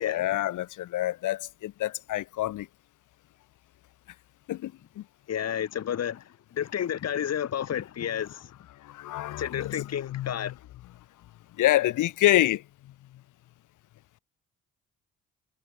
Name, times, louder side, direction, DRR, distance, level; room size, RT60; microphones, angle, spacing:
voice 1, 0.0-2.7 4.5-4.7 5.0-5.1 8.8-10.5 11.6-12.6, left 14 dB, 85° left, 3.8 m, -27 dB
voice 2, 5.3-8.5 9.4-10.6, left 9 dB, 55° left, 2.6 m, -31 dB
cardioid pair, 90°, 30 cm